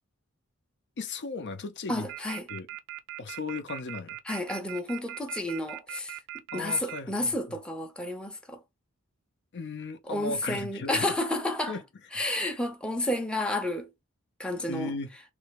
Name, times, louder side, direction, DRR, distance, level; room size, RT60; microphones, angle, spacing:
voice 1, 1.0-2.1 2.5-2.7 3.2-4.2 6.5-7.3 9.5-11.2 11.7-11.8 14.7-15.1, left 3 dB, 50° left, 0.5 m, -36 dB
voice 2, 1.9-2.5 4.3-6.2 6.5-8.6 10.1-11.8 12.1-13.9 14.4-14.9, left 1 dB, 5° left, 0.6 m, -31 dB
Off-hook tone, 2.1-7.0, right 14 dB, 60° right, 0.5 m, -39 dB
3.3 x 2.9 x 3.3 m
head